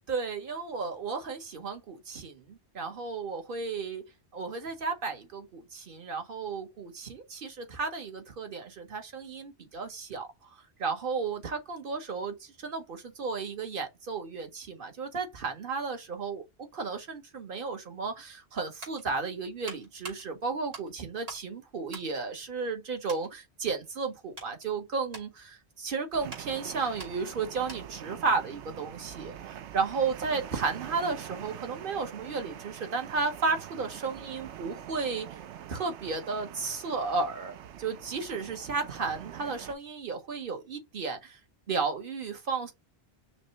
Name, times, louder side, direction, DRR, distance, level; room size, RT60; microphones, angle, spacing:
voice 1, 0.1-4.0 4.3-10.5 10.8-35.3 35.7-41.4 41.7-42.7, right 4 dB, 55° right, 1.2 m, -33 dB
sound 1, 18.5-21.5 21.8-22.8 23.1-23.3 23.9-28.1 28.4-28.6, right 2 dB, 70° right, 2.6 m, -47 dB
sound 2, 26.1-39.7, right 10 dB, 90° right, 0.9 m, -44 dB
5.8 x 2.2 x 2.8 m
omnidirectional pair, 1.1 m